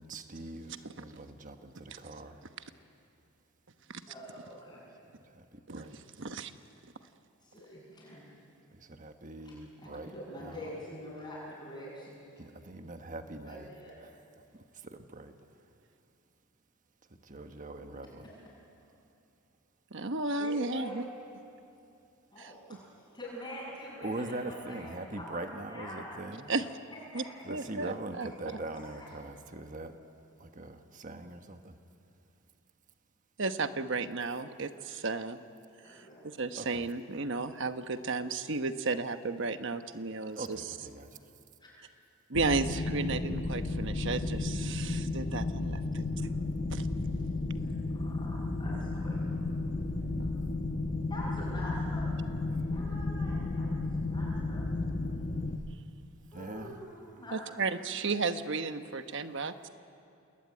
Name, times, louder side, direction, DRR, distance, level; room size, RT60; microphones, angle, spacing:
voice 1, 0.0-2.4 5.3-6.0 8.7-10.1 10.4-10.6 12.4-13.7 14.0-14.1 14.8-15.3 17.2-18.2 24.0-26.5 27.4-29.9 30.4-31.7 36.5-36.8 40.4-41.1 56.3-56.8, right 2 dB, 35° right, 6 dB, 1.3 m, -42 dB
voice 2, 4.1-4.8 7.4-8.2 9.4-12.2 13.4-14.0 17.8-17.9 18.2-18.3 20.4-20.9 22.3-26.2 27.1-27.2 28.7-29.1 35.8-36.2 40.2-40.3 41.6-41.7 47.6-49.2 51.1-54.7 56.3-57.4, left 1 dB, 20° left, -9 dB, 7.0 m, -45 dB
voice 3, 5.7-6.5 19.9-21.0 22.4-22.5 26.5-26.7 27.1-27.2 27.5-28.6 33.4-35.4 35.9-36.0 36.2-40.6 42.3-46.0 46.7-46.9 50.0-50.3 57.3-59.7, right 3 dB, 60° right, 9 dB, 1.1 m, -34 dB
sound 1, 42.3-55.6, left 2 dB, 40° left, 1.1 m, -33 dB
28.5 x 20.0 x 9.7 m, 2.6 s
head